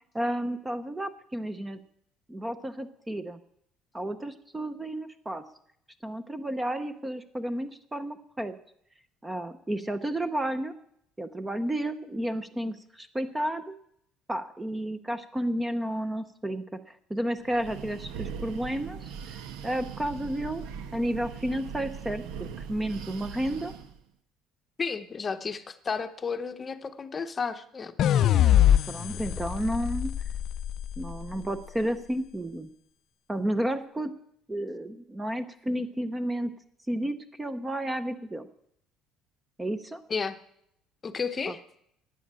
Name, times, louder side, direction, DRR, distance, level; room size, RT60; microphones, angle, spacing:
voice 1, 0.1-1.8 2.3-3.4 3.9-5.4 6.0-8.5 9.2-10.7 11.2-13.7 14.3-19.4 19.6-20.6 20.9-23.7 28.9-30.1 31.0-32.7 33.3-34.1 34.5-36.5 36.9-38.5 39.6-40.0 41.5-41.6, right 1 dB, 10° right, 10 dB, 0.7 m, -32 dB
Breathing, 17.4-24.0, right 7 dB, 80° right, 1.2 m, -40 dB
voice 2, 24.8-27.9 40.1-40.4 41.0-41.6, left 5 dB, 20° left, 9 dB, 0.8 m, -32 dB
sound 1, 28.0-31.2, left 11 dB, 45° left, 0.5 m, -23 dB
13.0 x 9.8 x 8.8 m, 0.73 s
cardioid pair, 155°, 0 cm